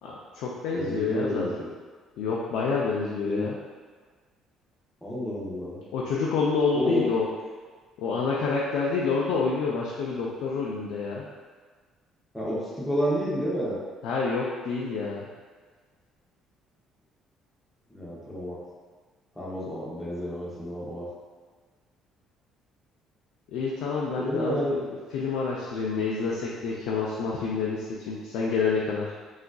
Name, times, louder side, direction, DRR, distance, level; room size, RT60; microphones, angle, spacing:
voice 1, 0.0-1.5 2.2-3.6 5.9-7.3 8.0-11.3 14.0-15.3 23.5-29.1, left 4 dB, 80° left, -4 dB, 0.3 m, -28 dB
voice 2, 0.7-1.7 3.2-3.5 5.0-5.8 6.7-7.0 12.3-13.8 17.9-18.6 19.4-21.1 24.2-24.8, equal, 5° left, -7 dB, 0.6 m, -30 dB
3.7 x 2.4 x 2.2 m, 1.5 s
cardioid pair, 165°, 0 cm